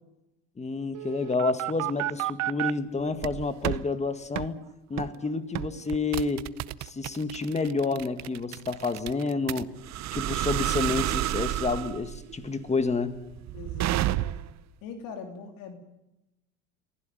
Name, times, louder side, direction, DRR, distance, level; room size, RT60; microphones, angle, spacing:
voice 1, 0.6-4.6 4.9-6.5 6.8-9.7 10.1-13.2, left 3 dB, 20° left, 10 dB, 1.9 m, -29 dB
sound 1, 0.9-2.7 3.2-3.8 4.4-4.5 5.0-5.2 5.6-14.6, right 15 dB, 50° right, 0.8 m, -31 dB
voice 2, 13.5-14.4 14.8-15.8, left 5 dB, 65° left, 4 dB, 3.2 m, -41 dB
23.0 x 16.0 x 9.4 m, 0.95 s
supercardioid pair, 90°, 37 cm